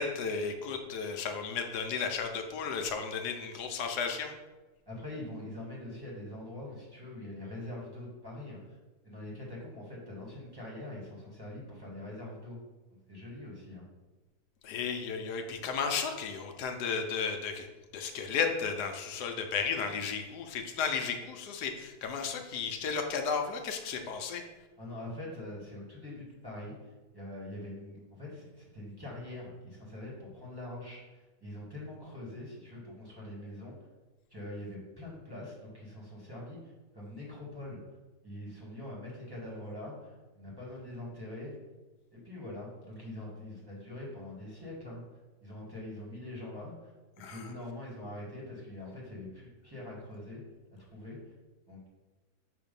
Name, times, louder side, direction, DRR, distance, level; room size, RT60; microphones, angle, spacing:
voice 1, 0.0-4.3 14.6-17.7 17.9-24.4 47.2-47.4, left 5 dB, 80° left, 5 dB, 1.2 m, -34 dB
voice 2, 4.9-8.8 9.0-12.6 13.1-13.8 24.8-33.8 34.3-37.8 38.2-41.5 42.1-45.0 45.4-50.4 50.9-51.3 51.7-51.9, left 1 dB, 15° right, -5 dB, 1.4 m, -43 dB
6.3 x 2.8 x 5.2 m, 1.2 s
omnidirectional pair, 1.7 m